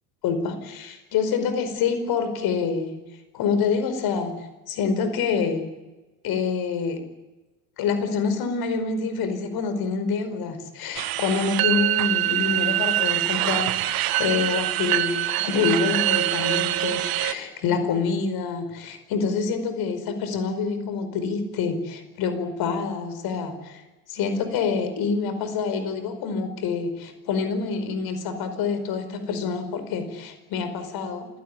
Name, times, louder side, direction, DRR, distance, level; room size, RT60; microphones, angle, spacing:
voice 1, 0.2-2.9 3.3-5.7 6.2-7.0 7.8-23.8 24.1-31.3, left 5 dB, 50° left, 10 dB, 5.0 m, -26 dB
sound 1, 11.0-17.3, right 16 dB, 50° right, 1.6 m, -24 dB
27.5 x 17.5 x 9.7 m, 1.1 s
figure-of-eight pair, 70°, 46 cm